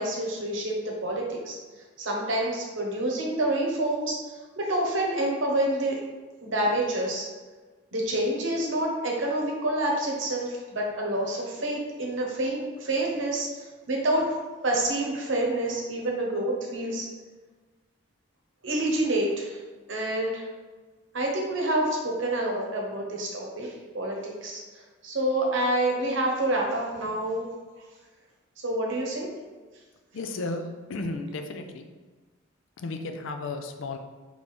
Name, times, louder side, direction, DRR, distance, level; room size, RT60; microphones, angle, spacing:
voice 1, 0.0-1.6 2.0-4.2 4.6-6.0 6.4-7.3 7.9-14.4 14.6-17.1 18.6-19.6 19.9-20.4 21.1-24.6 25.0-27.5 28.6-29.3, right 1 dB, 70° right, -1 dB, 0.9 m, -27 dB
voice 2, 30.1-30.6 30.9-31.9 32.8-34.0, left 3 dB, 80° left, 6 dB, 0.4 m, -34 dB
3.3 x 3.1 x 4.1 m, 1.3 s
head